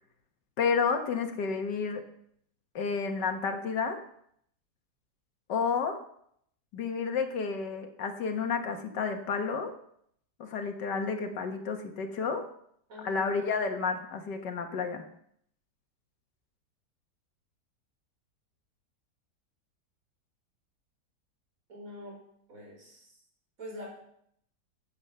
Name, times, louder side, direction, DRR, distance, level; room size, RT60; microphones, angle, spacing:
voice 1, 0.6-2.0 2.8-4.0 5.5-6.0 6.7-9.7 10.4-12.5 13.0-15.1, left 5 dB, 90° left, 6 dB, 2.0 m, -31 dB
voice 2, 12.9-13.3 21.7-22.2 22.5-23.2 23.6-24.0, left 1 dB, 50° right, -2 dB, 5.0 m, -44 dB
10.5 x 8.9 x 6.7 m, 0.70 s
omnidirectional pair, 1.8 m